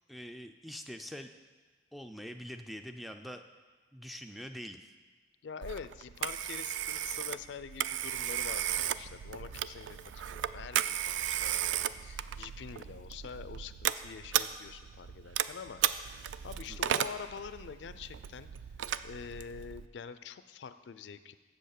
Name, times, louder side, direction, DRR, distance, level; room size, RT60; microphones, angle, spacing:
voice 1, 0.1-1.3 1.9-3.4 3.9-4.8 16.7-16.9, equal, ahead, 7 dB, 0.3 m, -44 dB
voice 2, 5.4-18.5 19.0-21.4, left 6 dB, 75° left, 13 dB, 0.4 m, -45 dB
Telephone, 5.6-19.9, right 10 dB, 85° right, 0.3 m, -35 dB
7.8 x 7.0 x 6.5 m, 1.4 s
head